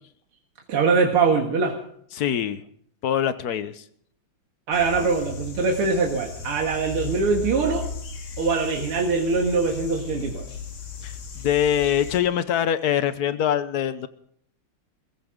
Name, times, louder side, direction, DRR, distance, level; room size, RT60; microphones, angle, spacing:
voice 1, 0.7-1.8 4.7-7.9 8.4-10.5, right 4 dB, 90° right, 1 dB, 2.6 m, -22 dB
voice 2, 2.1-2.6 3.0-3.8 11.0-14.1, left 9 dB, 55° left, 13 dB, 1.2 m, -24 dB
sound 1, 4.7-12.2, left 5 dB, 75° left, 2.9 m, -36 dB
22.0 x 15.5 x 3.8 m, 0.65 s
omnidirectional pair, 2.4 m